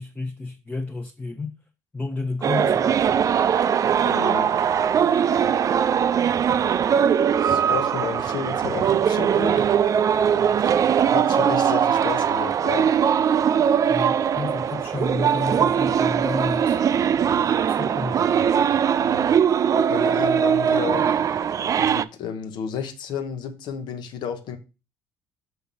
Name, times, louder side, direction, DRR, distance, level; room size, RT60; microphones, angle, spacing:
voice 1, 0.0-1.5 1.9-3.2 13.9-16.8 17.7-18.3, left 3 dB, 15° left, 0.9 m, -31 dB
sound 1, 2.4-22.0, right 8 dB, 40° right, 0.4 m, -21 dB
voice 2, 4.0-4.5 7.4-9.7 10.3-10.7 11.1-12.9 19.0-19.3 19.9-21.2 21.8-24.6, left 7 dB, 65° left, 1.0 m, -32 dB
6.0 x 3.3 x 5.4 m
supercardioid pair, 70°, 8 cm